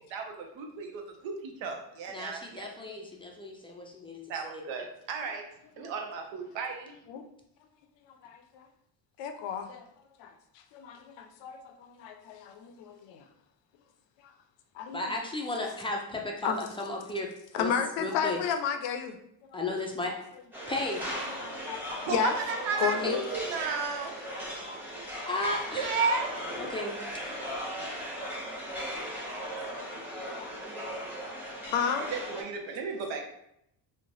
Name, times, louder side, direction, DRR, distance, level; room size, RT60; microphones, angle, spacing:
voice 1, 0.1-2.7 4.3-5.4 5.8-6.9 22.1-24.2 25.7-26.3 32.3-33.2, right 4 dB, 75° right, 3 dB, 0.7 m, -33 dB
voice 2, 2.1-4.6 14.9-17.7 18.0-18.4 19.5-20.2 20.7-21.1 23.0-23.2 25.3-25.9 26.6-27.0, left 2 dB, 15° left, 0 dB, 0.3 m, -34 dB
voice 3, 8.1-8.7 9.2-9.9 10.2-10.3 10.7-13.2 14.7-15.2 16.4-16.6 17.5-19.2 19.4-19.6 20.1-20.2 21.1-22.3 22.8-23.2 28.3-28.5 29.4-30.9 31.7-32.1 32.7-32.8, left 7 dB, 70° left, 7 dB, 0.5 m, -33 dB
sound 1, 20.5-32.4, equal, 5° right, 1.0 m, -37 dB
3.1 x 2.1 x 2.5 m, 0.77 s
supercardioid pair, 85°, 46 cm